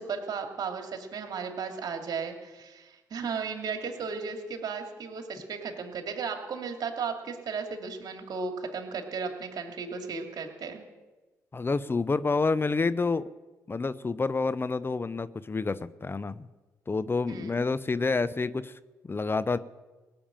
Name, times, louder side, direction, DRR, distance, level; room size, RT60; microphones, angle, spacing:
voice 1, 0.0-10.8 17.3-17.6, right 5 dB, 60° right, 4 dB, 2.3 m, -35 dB
voice 2, 11.5-13.2 13.7-16.5 16.9-18.7 19.0-19.6, left 4 dB, 30° left, 16 dB, 0.6 m, -28 dB
18.0 x 7.1 x 8.9 m, 1.2 s
hypercardioid pair, 50°, 8 cm